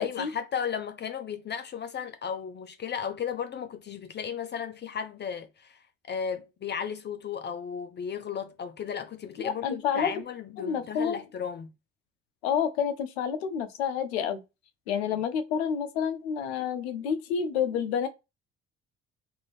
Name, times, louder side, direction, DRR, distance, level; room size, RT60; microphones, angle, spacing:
voice 1, 0.0-11.7 14.9-15.1, left 7 dB, 35° left, 0.4 m, -35 dB
voice 2, 9.4-10.1 10.6-11.2 12.4-14.4 14.9-18.1, left 7 dB, 90° left, 0.5 m, -29 dB
2.7 x 2.5 x 3.0 m
hypercardioid pair, 55°, 31 cm